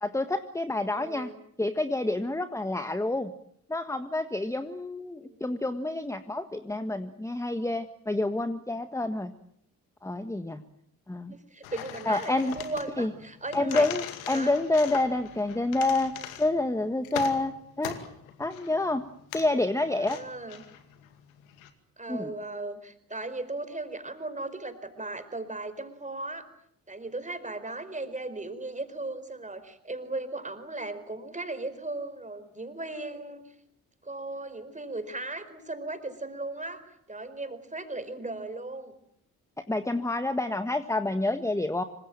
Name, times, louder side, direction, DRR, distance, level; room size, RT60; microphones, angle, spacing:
voice 1, 0.0-1.3 1.6-3.3 3.7-9.3 10.0-10.6 11.1-11.3 12.1-12.6 13.0-13.1 13.5-18.0 18.4-19.1 19.3-20.2 22.1-22.3 39.7-41.8, left 2 dB, 5° left, 10 dB, 1.5 m, -28 dB
voice 2, 0.9-1.4 5.2-5.6 11.3-13.9 14.3-14.5 19.9-20.6 22.0-26.5 26.9-33.5 34.0-38.9, right 2 dB, 15° right, 10 dB, 4.6 m, -37 dB
sound 1, 11.6-21.7, left 10 dB, 75° left, 2.3 m, -41 dB
26.5 x 25.5 x 7.6 m, 0.70 s
figure-of-eight pair, 40°, 42 cm